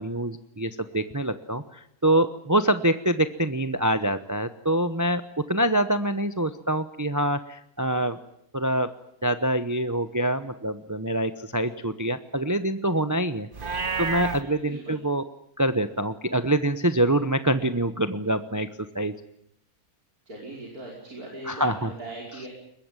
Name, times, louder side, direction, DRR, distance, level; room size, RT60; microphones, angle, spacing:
voice 1, 0.0-8.2 8.5-8.9 9.2-13.5 14.0-15.2 15.6-18.7 18.9-19.1 21.5-21.9, right 1 dB, 15° right, 11 dB, 0.8 m, -25 dB
Livestock farm animals working animals, 13.5-14.4, right 4 dB, 40° right, 1.3 m, -29 dB
voice 2, 14.4-15.0 20.3-22.5, right 2 dB, 80° right, -2 dB, 5.8 m, -39 dB
23.0 x 21.0 x 9.0 m, 0.73 s
omnidirectional pair, 1.6 m